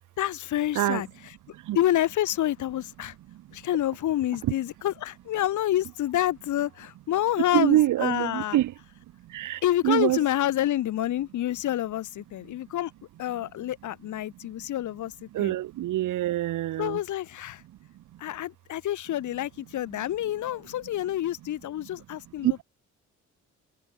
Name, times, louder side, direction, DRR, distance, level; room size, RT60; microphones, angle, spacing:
voice 1, 0.2-1.1 1.8-3.1 3.5-8.6 9.6-12.9 13.2-15.1 15.4-15.5 16.8-17.6 18.2-22.6, left 13 dB, 75° left, 2.4 m, -28 dB
voice 2, 7.5-8.7 9.3-10.2 15.3-17.0 22.4-22.6, right 14 dB, 85° right, 5.0 m, -25 dB
cardioid pair, 90°, 30 cm